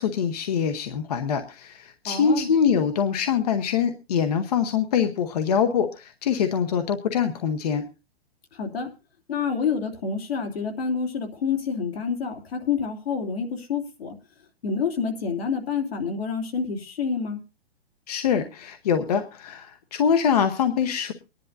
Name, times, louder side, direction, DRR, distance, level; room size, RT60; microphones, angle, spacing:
voice 1, 0.0-7.8 18.1-21.1, left 7 dB, 40° left, 8 dB, 1.0 m, -24 dB
voice 2, 2.0-2.5 8.5-8.9 9.3-14.2 14.6-17.4, left 6 dB, 75° left, 3 dB, 3.0 m, -28 dB
24.0 x 10.5 x 2.6 m, 0.30 s
hypercardioid pair, 175°, 31 cm